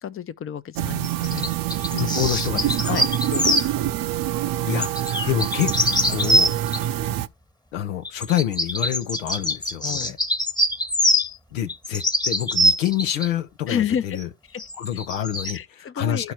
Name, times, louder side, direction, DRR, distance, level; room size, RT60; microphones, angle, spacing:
voice 1, 0.0-1.5 2.9-3.6 9.8-10.2 13.7-14.2 14.5-14.6 15.5-16.3, left 8 dB, 35° left, 0.7 m, -30 dB
sound 1, 0.7-7.3, right 13 dB, 60° right, 0.7 m, -26 dB
sound 2, 1.0-3.7 4.8-6.8 8.0-11.3 11.7-13.3 14.2-14.3 14.6-15.6, left 1 dB, 10° left, 1.1 m, -23 dB
voice 2, 1.9-3.1 4.7-5.7 6.1-6.5 7.7-10.2 11.5-14.3 14.8-16.3, left 11 dB, 90° left, 0.7 m, -27 dB
12.0 x 4.5 x 4.5 m
hypercardioid pair, 50°, 39 cm